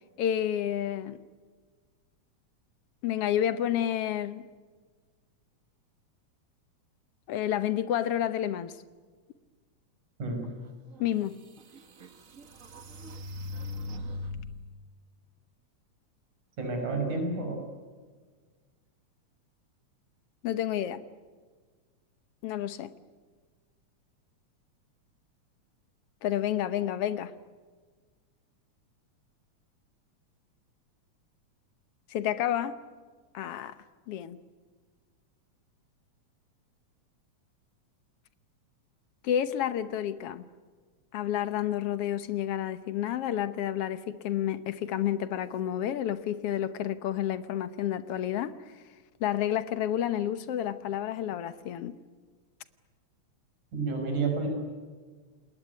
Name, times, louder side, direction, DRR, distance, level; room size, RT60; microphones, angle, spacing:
voice 1, 0.2-1.2 3.0-4.5 7.3-8.7 11.0-11.4 20.4-21.0 22.4-22.9 26.2-27.3 32.1-32.8 33.3-33.7 34.1-34.4 39.2-40.5 41.1-48.5 49.2-52.0, left 11 dB, 65° left, 13 dB, 1.8 m, -30 dB
sound 1, 10.9-11.0 11.6-14.7, left 2 dB, 40° right, 1.1 m, -39 dB
voice 2, 16.6-17.6 53.7-54.5, right 3 dB, 85° right, 3 dB, 7.3 m, -30 dB
29.5 x 20.0 x 9.5 m, 1.5 s
omnidirectional pair, 3.4 m